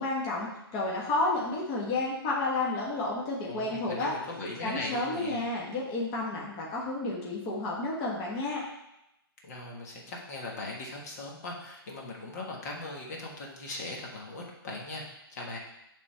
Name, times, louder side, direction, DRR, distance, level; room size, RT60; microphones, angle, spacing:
voice 1, 0.0-4.1 4.6-8.6, left 2 dB, 25° left, -4 dB, 1.4 m, -31 dB
voice 2, 3.4-5.5 9.4-15.1 15.3-15.6, left 2 dB, 40° left, -1 dB, 1.4 m, -39 dB
8.2 x 3.7 x 5.7 m, 0.87 s
hypercardioid pair, 160°, 13 cm